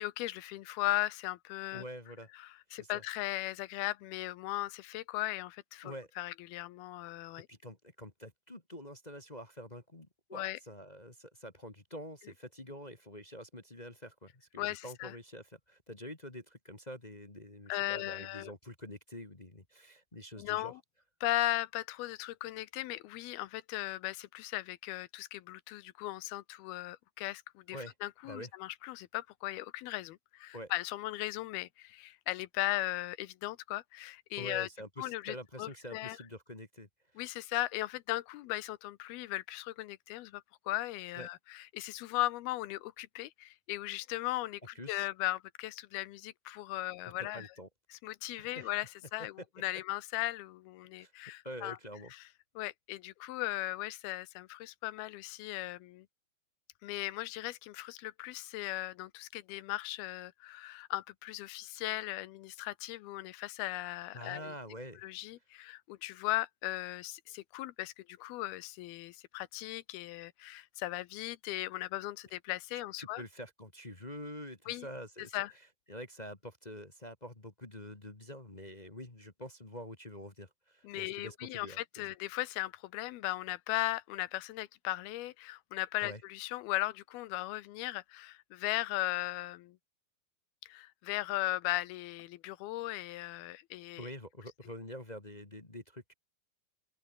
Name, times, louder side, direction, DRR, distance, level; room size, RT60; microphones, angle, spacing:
voice 1, 0.0-1.8 2.4-7.5 10.3-10.6 14.6-15.2 17.7-18.5 20.4-20.8 21.2-34.7 35.0-36.2 37.2-47.5 47.9-51.8 52.1-52.2 52.6-56.1 56.8-64.5 65.0-73.2 74.7-74.9 75.3-75.5 80.8-89.8 90.6-94.1, left 17 dB, 80° left, 2.8 m, -37 dB
voice 2, 1.7-2.3 2.7-3.0 5.8-6.1 7.5-20.7 27.7-27.9 28.2-28.5 30.5-30.7 34.4-37.2 41.1-41.3 44.7-45.1 47.3-47.7 48.4-48.7 51.0-51.1 51.4-52.1 64.1-65.0 72.7-75.4 75.9-82.1 86.0-86.2 94.0-96.1, equal, 20° left, 1.2 m, -46 dB
open air
omnidirectional pair, 4.4 m